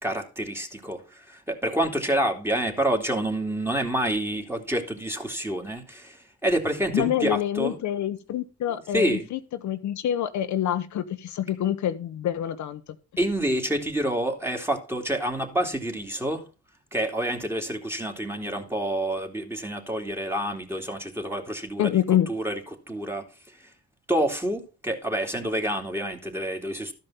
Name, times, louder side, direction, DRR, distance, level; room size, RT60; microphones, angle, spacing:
voice 1, 0.0-7.8 8.9-9.3 13.2-16.4 16.9-22.0 22.3-22.6 22.9-23.3 24.1-26.9, right 1 dB, 10° right, 2.6 m, -28 dB
voice 2, 6.9-12.8 21.8-22.3, left 11 dB, 70° left, 0.9 m, -26 dB
13.0 x 5.4 x 5.7 m
cardioid pair, 90°, 30 cm